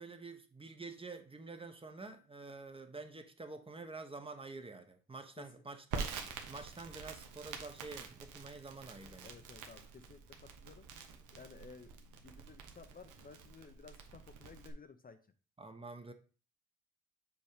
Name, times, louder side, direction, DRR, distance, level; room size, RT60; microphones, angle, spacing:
voice 1, 0.0-6.1 6.5-9.3 15.6-16.1, right 3 dB, 20° right, 0.9 m, -48 dB
voice 2, 5.4-5.7 9.2-15.2, left 5 dB, 30° left, 0.6 m, -56 dB
Crackle, 5.9-14.7, right 5 dB, 90° right, 1.1 m, -47 dB
7.1 x 3.0 x 5.0 m
cardioid pair, 90°, 30 cm